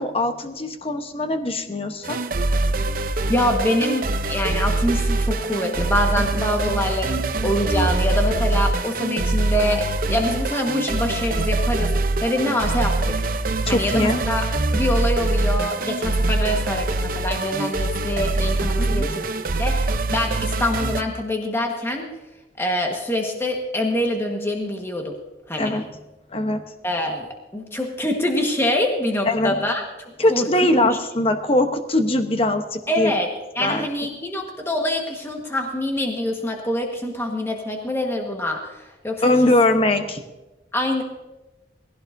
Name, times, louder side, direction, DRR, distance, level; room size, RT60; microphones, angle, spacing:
voice 1, 0.0-2.2 13.7-14.2 18.8-19.1 25.6-25.9 26.3-26.6 29.3-29.6 30.2-33.1 33.6-33.9 39.2-40.2, left 1 dB, 35° left, 7 dB, 1.0 m, -21 dB
sound 1, 2.0-21.0, right 2 dB, 55° right, 0.7 m, -23 dB
voice 2, 3.3-11.9 12.2-13.1 13.7-14.4 14.7-22.1 22.6-25.2 25.5-25.8 26.8-29.8 30.3-30.5 32.9-33.3 33.5-38.8 39.0-39.2 40.7-41.0, left 1 dB, 15° left, 1 dB, 1.4 m, -25 dB
19.0 x 16.0 x 2.7 m, 1.1 s
head